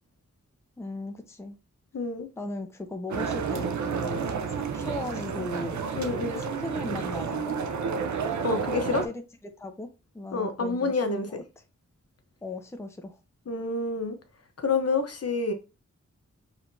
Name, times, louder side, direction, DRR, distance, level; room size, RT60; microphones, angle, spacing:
voice 1, 0.8-1.6 2.4-5.9 6.4-7.6 8.4-9.2 9.6-9.9 10.1-11.4 12.4-13.2, left 2 dB, 10° left, 0.6 m, -38 dB
voice 2, 1.9-2.3 5.9-6.4 8.4-9.0 10.3-11.3 13.5-14.2 14.6-15.5, left 3 dB, 55° left, 0.9 m, -28 dB
sound 1, 3.1-9.1, right 5 dB, 75° right, 0.6 m, -31 dB
4.9 x 3.3 x 2.6 m
wide cardioid pair, 70°, 29 cm